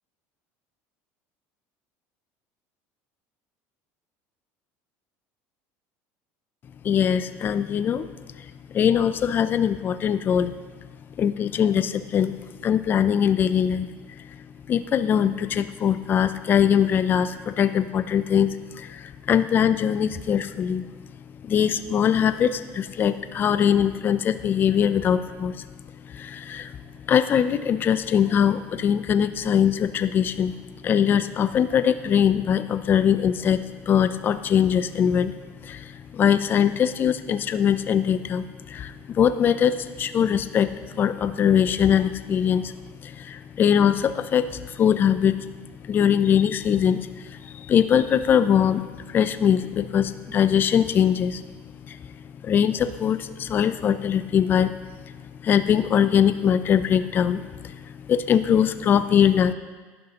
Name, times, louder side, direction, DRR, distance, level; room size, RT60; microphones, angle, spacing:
voice 1, 6.8-8.1 8.7-10.5 11.2-12.3 12.6-13.9 14.7-20.8 21.5-25.7 26.1-26.7 27.1-30.5 30.8-33.6 33.9-35.3 35.6-42.7 43.0-45.4 45.9-47.0 47.4-51.4 51.9-52.0 52.4-54.7 55.4-57.8 58.1-59.5, left 8 dB, 30° left, 12 dB, 0.4 m, -22 dB
11.5 x 11.0 x 2.9 m, 1.4 s
cardioid pair, 135°, 7 cm